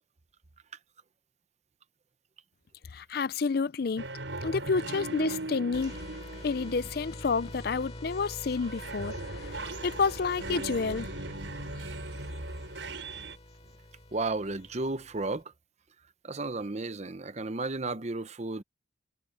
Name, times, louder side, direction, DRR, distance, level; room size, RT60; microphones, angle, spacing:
voice 1, 2.9-4.0 4.4-5.9 6.4-9.2 9.4-11.1, left 4 dB, 55° left, 0.5 m, -29 dB
sound 1, 4.0-8.1 8.6-13.4, right 2 dB, 75° right, 6.0 m, -39 dB
sound 2, 5.7-15.4, left 1 dB, 30° left, 3.5 m, -45 dB
voice 2, 14.1-15.4 16.2-18.6, right 3 dB, 35° right, 0.8 m, -33 dB
head